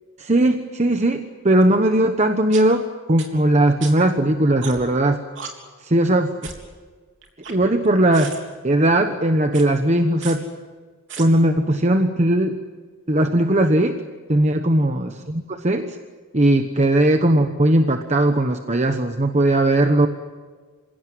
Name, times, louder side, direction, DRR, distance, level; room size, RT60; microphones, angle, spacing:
voice 1, 0.2-5.2 5.8-6.3 7.5-8.4 8.6-10.5 11.2-12.6 13.1-14.0 14.3-16.0 16.3-20.1, right 1 dB, 35° right, 6 dB, 1.1 m, -18 dB
sound 1, 1.6-1.7 2.5-2.6 3.2-3.3 3.8-3.9 4.6-4.9 5.4-5.5 6.4-6.7 7.2-7.9 8.1-8.4 9.5-9.6 10.2-10.4 11.1-11.2, right 6 dB, 65° right, 3.6 m, -35 dB
27.5 x 17.0 x 9.4 m, 1.5 s
head